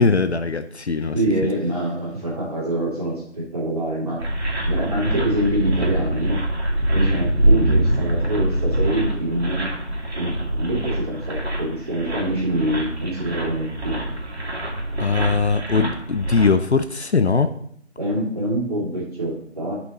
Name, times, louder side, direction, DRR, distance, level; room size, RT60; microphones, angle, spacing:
voice 1, 0.0-1.2 15.0-17.5, left 4 dB, 60° left, 10 dB, 0.6 m, -20 dB
voice 2, 1.1-4.2 4.7-6.4 6.9-9.7 10.2-14.0 15.7-15.9 18.0-19.8, right 1 dB, 30° right, -7 dB, 2.7 m, -25 dB
sound 1, 4.2-16.5, right 1 dB, 60° right, 2.2 m, -24 dB
13.0 x 5.6 x 3.0 m, 0.66 s
figure-of-eight pair, 175°, 37 cm